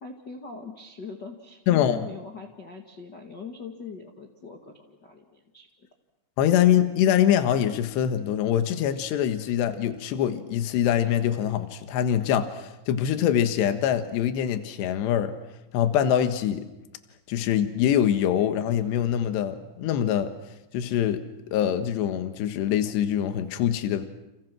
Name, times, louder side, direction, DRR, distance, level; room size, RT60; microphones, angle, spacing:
voice 1, 0.0-5.9, left 5 dB, 45° left, 1 dB, 1.3 m, -41 dB
voice 2, 1.7-2.1 6.4-15.3 15.7-16.7 17.3-20.3 20.7-21.2 21.5-24.1, left 10 dB, 70° left, 8 dB, 3.5 m, -24 dB
30.0 x 29.5 x 6.2 m, 0.98 s
omnidirectional pair, 5.4 m